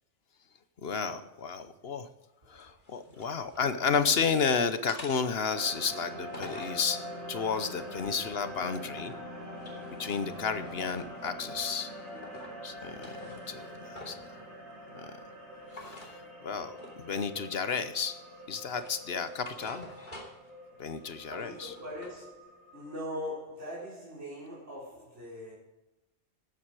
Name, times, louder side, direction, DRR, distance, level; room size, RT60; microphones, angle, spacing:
voice 1, 0.8-2.1 2.5-7.0 7.3-9.1 10.0-11.9 12.6-14.4 14.9-15.1 15.7-15.9 16.4-18.1 18.5-19.9 20.8-21.7, left 5 dB, 60° left, 11 dB, 1.1 m, -32 dB
sound 1, 2.5-3.7 4.1-4.5 4.9-6.8 7.4-9.2 9.5-11.4 11.8-12.6 12.9-14.3 15.7-16.1 16.8-17.0 17.4-18.1 18.5-20.5 20.8-22.2, left 1 dB, 45° left, 2.9 m, -49 dB
sound 2, 5.5-23.0, equal, 55° right, 4.8 m, -44 dB
voice 2, 12.1-12.5 12.8-13.1 14.7-15.0 21.0-25.5, equal, 80° right, -7 dB, 4.5 m, -42 dB
13.5 x 9.1 x 4.8 m, 0.97 s
omnidirectional pair, 1.2 m